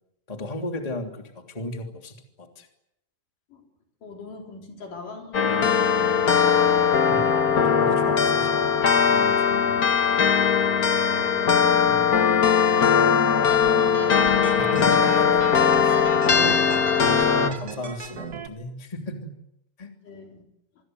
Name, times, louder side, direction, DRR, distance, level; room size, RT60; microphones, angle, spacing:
voice 1, 0.3-2.7 7.0-8.6 9.1-10.2 11.9-12.2 14.6-15.4 15.8-19.3 19.8-19.9, left 1 dB, 10° left, 4 dB, 2.8 m, -35 dB
voice 2, 4.0-7.0 9.5-9.8 11.1-12.1 12.7-15.3 16.5-16.6 20.1-20.4, left 4 dB, 65° left, 2 dB, 5.6 m, -39 dB
sound 1, 5.3-17.5, left 7 dB, 50° left, 1.1 m, -20 dB
sound 2, 13.5-18.5, right 5 dB, 55° right, 1.0 m, -37 dB
27.5 x 22.0 x 8.0 m, 0.81 s
omnidirectional pair, 4.0 m